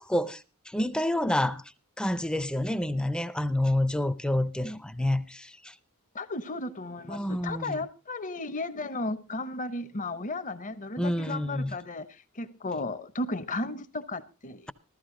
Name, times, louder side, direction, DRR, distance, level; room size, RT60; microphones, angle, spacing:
voice 1, 0.0-1.6 2.0-5.7 7.1-7.8 11.0-11.8, left 1 dB, 5° left, 0.6 m, -28 dB
voice 2, 6.1-12.1 12.4-14.7, left 2 dB, 35° left, 0.8 m, -34 dB
14.5 x 14.0 x 3.8 m
head